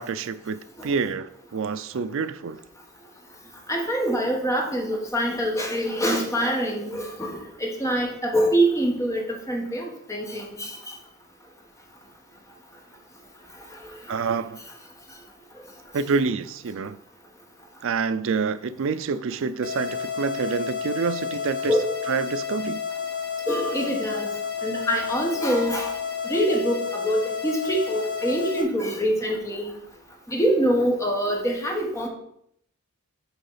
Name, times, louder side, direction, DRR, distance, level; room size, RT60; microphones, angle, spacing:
voice 1, 0.0-2.6 14.1-14.6 15.9-17.0 17.8-21.8 22.1-22.8, right 5 dB, 60° right, 12 dB, 0.4 m, -27 dB
voice 2, 3.7-9.2 9.5-10.9 21.7-21.9 23.5-24.3 24.6-25.9 26.3-29.7 30.3-32.1, right 1 dB, 15° left, 1 dB, 1.1 m, -25 dB
sound 1, 19.6-28.6, left 7 dB, 45° left, 1.2 m, -31 dB
6.9 x 3.9 x 5.5 m, 0.73 s
head